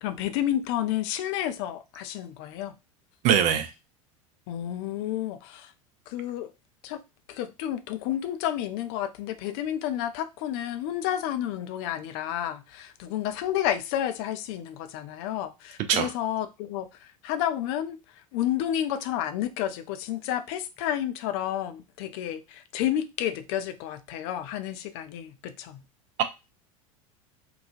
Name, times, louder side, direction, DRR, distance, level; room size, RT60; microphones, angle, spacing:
voice 1, 0.0-2.7 4.5-5.7 6.1-6.5 6.8-7.0 7.3-25.8, left 11 dB, 50° left, 0.4 m, -31 dB
voice 2, 3.2-3.7 15.9-16.1, right 9 dB, 45° right, 0.5 m, -22 dB
3.1 x 2.2 x 2.4 m
figure-of-eight pair, 80°, 18 cm